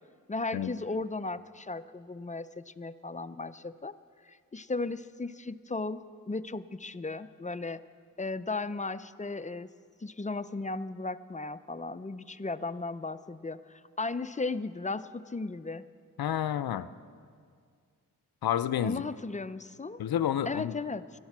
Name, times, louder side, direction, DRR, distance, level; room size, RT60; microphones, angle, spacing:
voice 1, 0.3-4.0 4.2-7.8 8.2-9.7 10.0-15.8 18.8-20.0 20.5-21.2, left 3 dB, 20° left, 13 dB, 0.4 m, -36 dB
voice 2, 16.2-16.9 18.4-19.0 20.0-20.8, left 10 dB, 90° left, 14 dB, 0.5 m, -29 dB
16.5 x 12.0 x 6.0 m, 2.1 s
wide cardioid pair, 70°, 35 cm